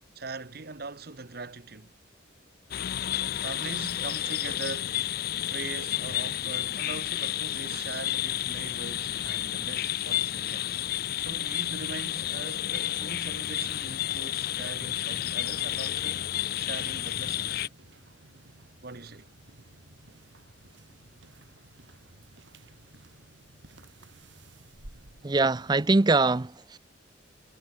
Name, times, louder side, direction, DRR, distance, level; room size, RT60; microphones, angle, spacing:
voice 1, 0.1-2.0 3.4-5.0 5.5-10.7 11.1-16.3 16.5-17.7 18.8-19.3, right 3 dB, 50° right, 1.2 m, -41 dB
sound 1, 2.7-17.7, left 13 dB, 50° left, 0.3 m, -31 dB
sound 2, 15.5-25.9, right 1 dB, 70° right, 2.8 m, -54 dB
voice 2, 25.2-26.8, right 3 dB, 20° right, 0.5 m, -23 dB
head